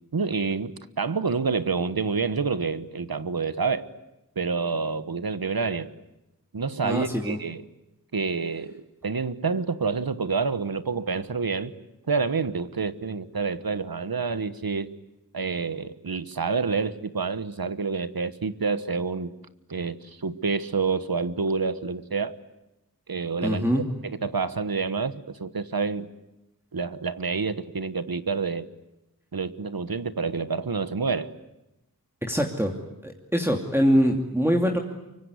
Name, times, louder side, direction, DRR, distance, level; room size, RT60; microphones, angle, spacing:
voice 1, 0.1-3.9 4.4-5.9 6.5-7.6 8.1-11.7 12.1-14.9 15.3-19.3 19.7-20.0 20.2-22.4 23.1-23.7 24.0-26.1 26.7-28.7 29.3-31.3, right 4 dB, 80° right, 13 dB, 1.3 m, -28 dB
voice 2, 6.8-7.4 23.4-23.8 32.2-32.7 33.0-34.8, equal, 5° right, 1 dB, 2.8 m, -23 dB
24.5 x 24.0 x 9.5 m, 0.95 s
wide cardioid pair, 45°, 35 cm